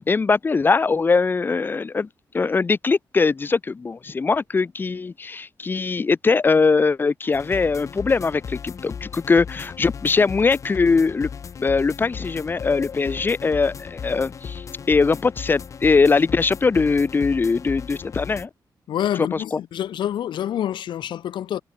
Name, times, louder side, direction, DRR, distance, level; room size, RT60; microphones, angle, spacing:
voice 1, 0.0-2.1 2.3-11.3 11.6-18.5 19.5-19.6, left 4 dB, 25° left, 4.2 m, -21 dB
sound 1, 7.3-18.5, left 6 dB, 40° left, 2.4 m, -36 dB
voice 2, 18.9-21.6, left 10 dB, 85° left, 1.8 m, -27 dB
wide cardioid pair, 175°, 8 cm